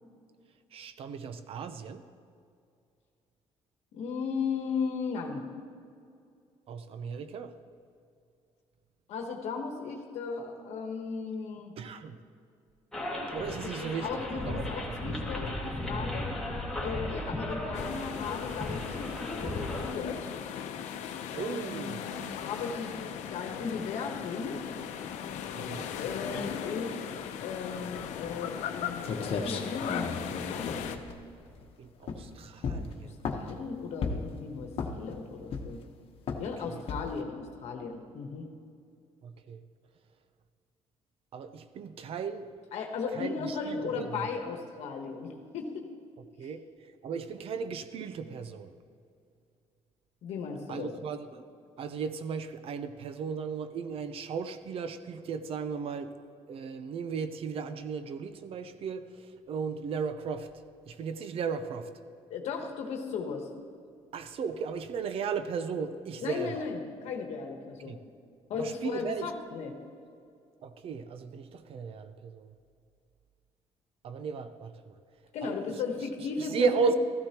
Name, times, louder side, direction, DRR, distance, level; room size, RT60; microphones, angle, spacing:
voice 1, 0.7-2.0 6.7-7.6 11.8-12.2 13.3-14.1 14.3-15.0 21.3-22.2 25.5-25.9 31.8-33.2 36.7-36.8 39.2-39.6 41.3-42.5 43.1-44.3 46.4-46.6 47.0-48.7 50.7-51.4 51.8-56.1 56.5-60.5 60.9-61.9 64.1-66.6 67.8-68.0 68.5-69.3 70.6-72.5 74.0-74.9 75.4-75.7 76.2-76.9, right 5 dB, 55° right, 10 dB, 0.7 m, -35 dB
voice 2, 3.9-5.4 9.1-11.7 13.4-16.3 16.8-20.3 21.3-22.9 23.3-24.6 25.1-26.9 27.4-31.0 33.0-34.7 35.0-35.8 36.4-38.5 42.7-45.9 50.2-50.9 62.3-63.5 66.2-68.0 68.5-69.7 75.3-76.9, left 5 dB, 75° left, 3 dB, 1.2 m, -36 dB
sound 1, 12.9-19.9, left 1 dB, 5° left, 1.9 m, -35 dB
sound 2, 17.7-31.0, left 8 dB, 90° left, 0.7 m, -38 dB
sound 3, 28.7-28.8 29.0-31.6 32.0-32.3 32.6-33.6 34.0-34.4 34.7-35.1 35.5-35.9 36.3-36.5 36.9-37.2, left 5 dB, 55° left, 1.1 m, -34 dB
14.5 x 13.0 x 2.9 m, 2.4 s
cardioid pair, 120°, 12 cm